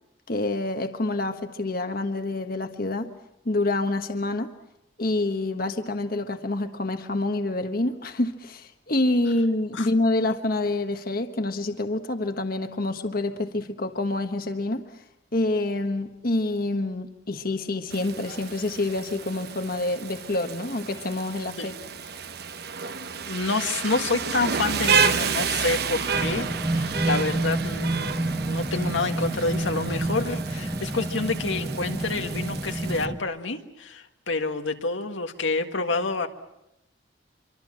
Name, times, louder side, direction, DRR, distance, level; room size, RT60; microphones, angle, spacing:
voice 1, 0.3-3.1 3.4-4.5 5.0-15.0 15.3-21.7, left 2 dB, 50° left, 7 dB, 1.3 m, -27 dB
Rain, 17.9-33.0, right 6 dB, 55° right, 1.1 m, -30 dB
voice 2, 23.3-36.3, left 3 dB, 90° left, 5 dB, 1.8 m, -28 dB
sound 1, 26.1-33.2, right 2 dB, 15° right, 0.9 m, -29 dB
26.0 x 24.5 x 7.5 m, 0.86 s
head